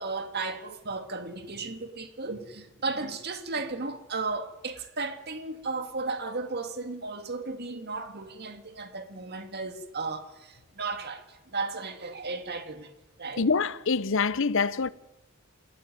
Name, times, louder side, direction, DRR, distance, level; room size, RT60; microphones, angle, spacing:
voice 1, 0.0-12.9 13.2-13.5, right 3 dB, 50° right, 2.1 m, -35 dB
voice 2, 13.4-14.9, left 4 dB, 65° left, 0.9 m, -25 dB
27.0 x 14.5 x 9.2 m
head